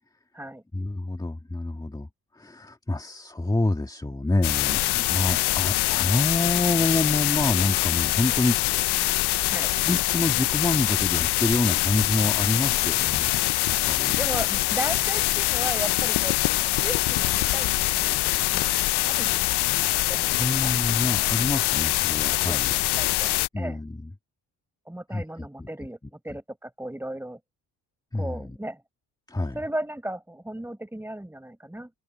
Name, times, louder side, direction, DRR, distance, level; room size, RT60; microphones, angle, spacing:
voice 1, 0.7-2.1 2.3-9.1 9.9-13.4 13.9-14.2 20.4-22.7 23.5-24.1 25.1-25.2 25.6-25.7 28.1-28.6 29.3-29.6, left 2 dB, 10° left, 2.3 m, -27 dB
sound 1, 4.4-23.5, left 18 dB, 75° left, 0.6 m, -24 dB
voice 2, 14.1-16.4 16.7-18.2 18.5-19.6 20.1-20.7 22.4-23.8 24.9-27.4 28.1-28.8 29.5-31.9, right 1 dB, 5° right, 4.6 m, -36 dB
cardioid pair, 110°, 40 cm